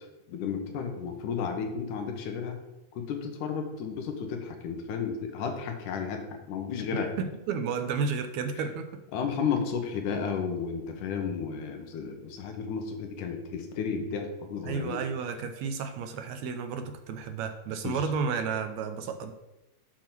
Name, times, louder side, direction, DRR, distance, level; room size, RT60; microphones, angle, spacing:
voice 1, 0.3-2.6 3.0-7.1 9.1-15.0 17.8-18.0, left 6 dB, 90° left, 4 dB, 2.5 m, -33 dB
voice 2, 6.9-8.9 14.6-19.3, right 5 dB, 75° right, 7 dB, 1.8 m, -32 dB
7.2 x 4.4 x 6.0 m, 0.98 s
omnidirectional pair, 3.5 m